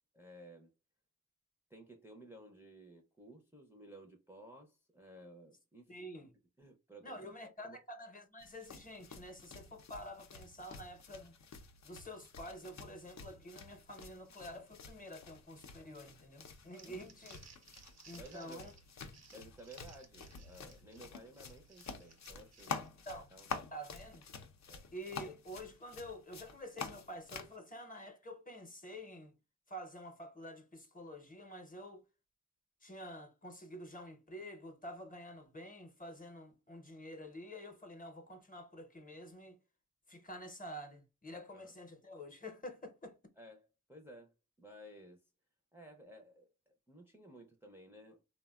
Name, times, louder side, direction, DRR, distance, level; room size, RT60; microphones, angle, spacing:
voice 1, 0.1-0.7 1.7-6.0 6.6-7.8 16.8-17.1 18.1-18.7 19.3-22.9 23.3-23.5 24.7-24.9 41.5-41.7 43.4-45.3 45.7-48.2, right 1 dB, 10° right, 0.4 m, -55 dB
voice 2, 5.9-6.3 7.0-11.4 11.8-17.4 18.1-18.7 23.1-23.3 23.7-24.2 24.9-29.3 29.7-32.0 32.8-39.6 40.1-43.2, equal, 30° left, 0.7 m, -48 dB
sound 1, 8.4-27.6, left 5 dB, 65° left, 0.5 m, -49 dB
Crumpling crinkling, 16.5-23.4, right 6 dB, 60° right, 0.6 m, -61 dB
3.4 x 2.1 x 2.2 m
wide cardioid pair, 110°, 30 cm